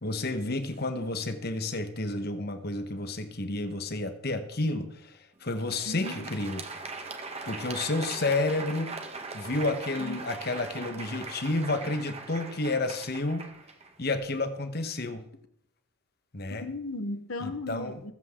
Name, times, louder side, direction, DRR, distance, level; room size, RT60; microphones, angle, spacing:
voice 1, 0.0-6.7 7.4-13.4 14.0-15.2 16.3-16.6 17.4-18.0, left 2 dB, 50° left, 1.3 m, -31 dB
Crowd, 5.5-14.4, right 3 dB, 30° right, 1.3 m, -40 dB
voice 2, 5.9-6.3 10.0-10.2 16.5-18.1, left 2 dB, 80° left, 1.2 m, -36 dB
21.0 x 7.8 x 3.8 m
head